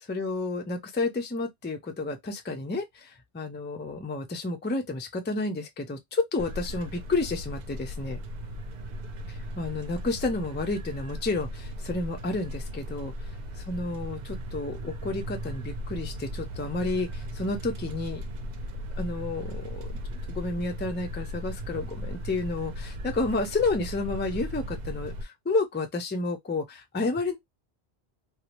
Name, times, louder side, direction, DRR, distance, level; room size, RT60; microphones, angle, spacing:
voice 1, 0.1-8.2 9.3-13.1 13.6-18.2 19.0-19.9 20.3-27.4, left 3 dB, 15° left, 0.3 m, -31 dB
sound 1, 6.4-25.2, equal, 55° right, 0.6 m, -37 dB
2.7 x 2.0 x 2.8 m
omnidirectional pair, 1.1 m